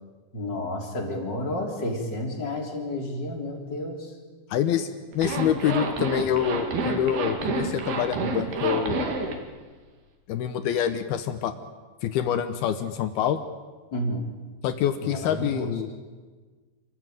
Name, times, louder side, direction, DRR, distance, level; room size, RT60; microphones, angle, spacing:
voice 1, 0.3-4.1 13.9-14.3 15.0-15.7, left 1 dB, 25° left, 0 dB, 3.7 m, -31 dB
voice 2, 4.5-9.0 10.3-11.5 12.0-13.4 14.6-15.9, left 10 dB, 75° left, 10 dB, 2.5 m, -26 dB
Zipper (clothing), 5.1-9.4, right 3 dB, 60° right, 4.1 m, -29 dB
28.0 x 14.5 x 9.1 m, 1.4 s
omnidirectional pair, 5.2 m